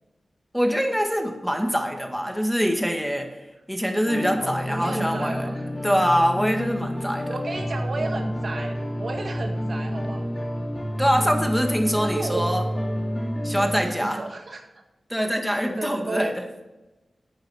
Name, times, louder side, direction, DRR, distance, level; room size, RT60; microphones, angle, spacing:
voice 1, 0.5-3.3 3.7-5.5 5.8-7.3 11.0-12.6 13.4-14.2 15.1-16.3, equal, ahead, 3 dB, 1.8 m, -24 dB
sound 1, 4.1-13.8, equal, 30° left, 3.9 m, -29 dB
voice 2, 4.4-6.1 7.3-10.3 12.0-12.9 13.8-14.6 15.8-16.3, right 3 dB, 65° right, 4 dB, 1.7 m, -33 dB
12.5 x 8.7 x 4.3 m, 1.1 s
cardioid pair, 60°, 0 cm